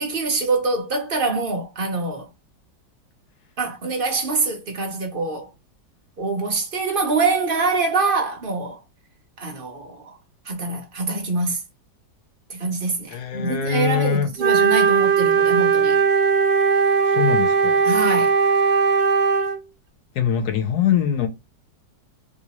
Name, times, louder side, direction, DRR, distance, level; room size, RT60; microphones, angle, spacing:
voice 1, 0.0-2.3 3.6-5.5 6.2-8.8 9.4-10.1 10.5-11.6 12.5-16.0 17.8-18.3, right 3 dB, 40° right, 0.8 m, -24 dB
voice 2, 13.1-14.3 17.1-17.8 20.2-21.3, left 8 dB, 70° left, 1.1 m, -22 dB
Wind instrument woodwind instrument, 14.4-19.6, right 6 dB, 90° right, 1.3 m, -18 dB
3.6 x 2.7 x 2.9 m
omnidirectional pair, 1.9 m